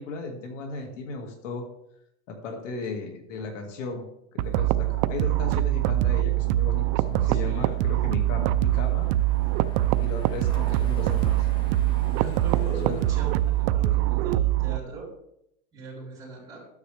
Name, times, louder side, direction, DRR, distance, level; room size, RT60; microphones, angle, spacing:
voice 1, 0.0-1.7 2.3-4.0 4.3-9.1 10.0-11.5 12.8-13.0, left 3 dB, 75° left, 3 dB, 2.3 m, -35 dB
sound 1, 4.4-14.8, right 15 dB, 35° right, 0.4 m, -24 dB
Car passing by, 5.3-13.8, left 1 dB, 15° left, 1.5 m, -45 dB
voice 2, 7.2-7.8 12.1-15.1 15.7-16.7, right 2 dB, 10° right, -6 dB, 4.3 m, -39 dB
12.5 x 9.5 x 3.5 m, 0.77 s
supercardioid pair, 155°, 37 cm